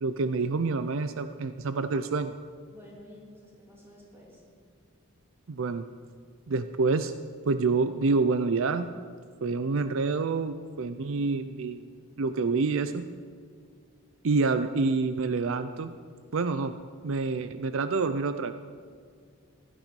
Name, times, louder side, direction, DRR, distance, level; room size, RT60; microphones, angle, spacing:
voice 1, 0.0-2.3 5.5-5.9 6.5-7.1 7.5-8.9 9.4-11.8 12.2-13.1 14.2-15.9 16.3-16.7 17.0-18.5, right 4 dB, 60° right, 10 dB, 0.5 m, -27 dB
voice 2, 2.7-4.4, equal, 10° right, -4 dB, 3.3 m, -51 dB
15.5 x 12.0 x 5.3 m, 2.1 s
head